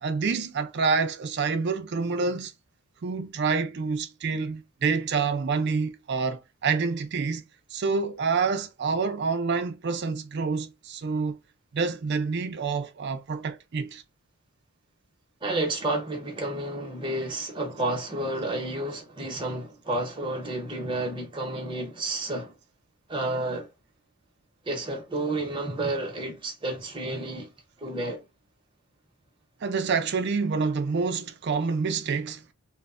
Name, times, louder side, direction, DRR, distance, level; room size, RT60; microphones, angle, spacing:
voice 1, 0.0-2.5 3.0-11.4 11.7-14.0 29.6-32.4, right 4 dB, 50° right, 0.4 m, -27 dB
voice 2, 15.4-22.5 23.1-23.7 24.6-27.5 27.8-28.2, right 2 dB, 20° right, 0.7 m, -31 dB
3.1 x 2.0 x 2.4 m
head